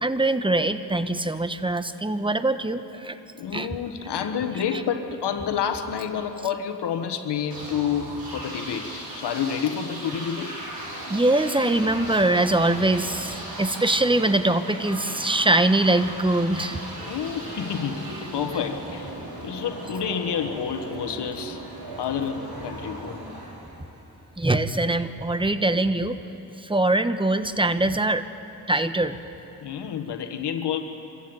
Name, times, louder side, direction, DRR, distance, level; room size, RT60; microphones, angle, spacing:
voice 1, 0.0-3.2 3.5-3.7 11.1-16.8 24.4-26.2 26.6-28.2 28.7-29.2, right 2 dB, 15° right, 10 dB, 1.2 m, -23 dB
voice 2, 3.3-10.6 17.0-19.1 19.4-21.6 22.0-23.2 29.6-30.8, left 8 dB, 85° left, 7 dB, 1.4 m, -29 dB
sound 1, 7.5-24.2, right 1 dB, 60° right, 5.9 m, -37 dB
25.5 x 14.5 x 8.9 m, 2.9 s
cardioid pair, 55°, 40 cm